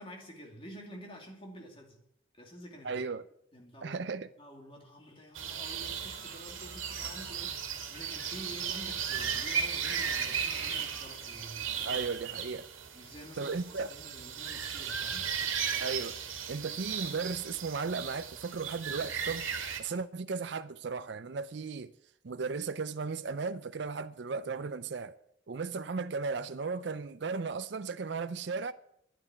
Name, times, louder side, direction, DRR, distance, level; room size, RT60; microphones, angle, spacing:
voice 1, 0.0-2.0 2.4-3.0 3.5-12.0 12.9-15.3, equal, 25° left, 2.6 m, -49 dB
voice 2, 2.8-3.2 3.8-4.3 11.8-12.7 13.4-13.9 15.8-16.2 16.5-19.5 19.8-21.9 22.2-25.2 25.5-28.7, right 4 dB, 60° right, 0.5 m, -35 dB
sound 1, 5.3-19.8, right 7 dB, 85° right, 1.9 m, -36 dB
sound 2, 6.1-11.3, left 1 dB, 45° left, 7.0 m, -54 dB
10.5 x 8.7 x 9.5 m
head